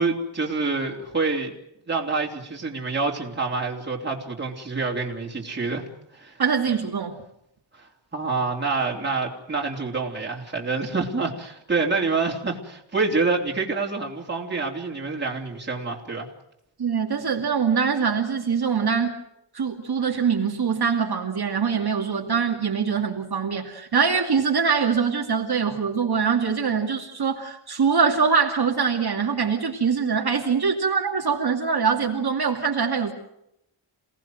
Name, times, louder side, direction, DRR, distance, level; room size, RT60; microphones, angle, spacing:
voice 1, 0.0-1.5 1.9-5.8 6.1-6.4 7.7-16.3, right 4 dB, 20° right, -2 dB, 3.3 m, -27 dB
voice 2, 6.4-7.2 16.8-19.2 19.5-33.1, right 6 dB, 50° right, 1 dB, 2.6 m, -23 dB
28.0 x 18.5 x 7.8 m, 0.81 s
wide cardioid pair, 175°, 49 cm